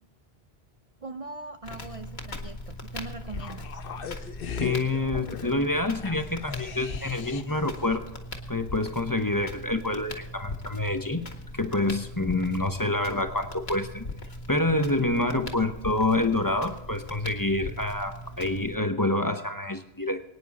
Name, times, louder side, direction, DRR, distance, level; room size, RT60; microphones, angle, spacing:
voice 1, 1.0-3.8, right 3 dB, 40° right, 7 dB, 0.6 m, -41 dB
Crackle, 1.6-18.7, left 1 dB, 80° left, 1.9 m, -40 dB
sound 1, 3.3-7.7 7.9-8.0, left 7 dB, 65° left, 0.9 m, -39 dB
voice 2, 4.6-8.1 8.5-11.3 11.5-14.1 14.5-20.2, left 2 dB, 20° left, 7 dB, 0.9 m, -27 dB
23.0 x 9.8 x 4.1 m, 0.91 s
omnidirectional pair, 1.1 m